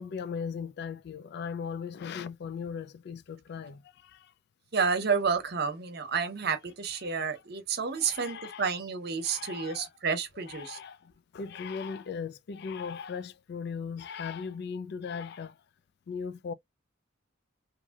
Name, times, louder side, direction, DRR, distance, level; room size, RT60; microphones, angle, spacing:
voice 1, 0.0-4.3 7.0-7.3 7.9-8.7 9.2-9.9 10.5-15.6 16.1-16.5, left 6 dB, 55° left, 0.3 m, -38 dB
voice 2, 4.7-10.8, right 5 dB, 55° right, 0.8 m, -30 dB
3.0 x 2.6 x 2.3 m
head